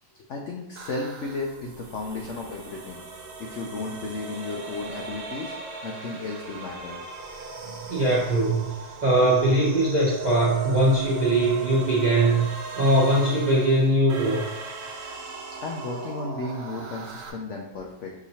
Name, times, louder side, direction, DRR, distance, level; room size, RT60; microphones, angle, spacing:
voice 1, 0.0-5.5 5.8-7.0 15.2-18.1, left 3 dB, 75° left, 0 dB, 0.6 m, -34 dB
sound 1, 0.8-17.3, right 4 dB, 70° right, 1.3 m, -38 dB
voice 2, 7.9-8.6 9.0-12.5 12.8-14.4, right 1 dB, 45° right, -7 dB, 0.5 m, -21 dB
6.0 x 3.0 x 2.7 m, 0.96 s
omnidirectional pair, 1.8 m